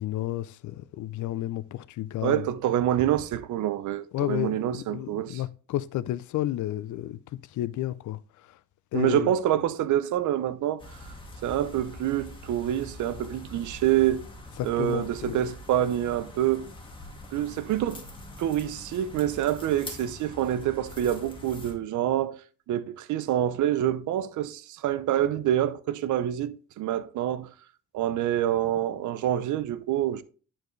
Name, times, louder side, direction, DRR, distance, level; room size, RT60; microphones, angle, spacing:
voice 1, 0.0-2.4 4.1-7.2 7.5-8.2 8.9-9.3 14.6-15.4, left 14 dB, 75° left, 0.5 m, -31 dB
voice 2, 2.2-5.4 8.9-10.8 11.4-14.3 14.6-16.7 17.3-18.0 18.4-22.4 22.7-27.5 27.9-30.2, right 11 dB, 75° right, 0.7 m, -26 dB
sound 1, 10.8-21.7, left 1 dB, 15° left, 1.9 m, -44 dB
10.5 x 4.4 x 3.2 m
cardioid pair, 90°, 30 cm